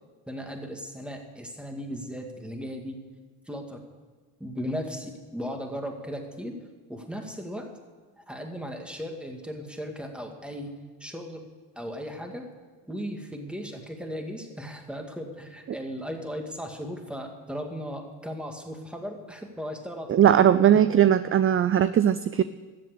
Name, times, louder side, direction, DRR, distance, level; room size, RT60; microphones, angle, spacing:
voice 1, 0.3-3.0 3.5-3.8 4.4-6.6 6.9-7.7 8.2-10.7 11.0-11.5 11.8-12.5 12.9-20.8, equal, ahead, 3 dB, 2.2 m, -36 dB
voice 2, 20.1-22.4, right 10 dB, 30° right, 14 dB, 0.4 m, -19 dB
13.5 x 7.6 x 8.4 m, 1.4 s
supercardioid pair, 75°, 43 cm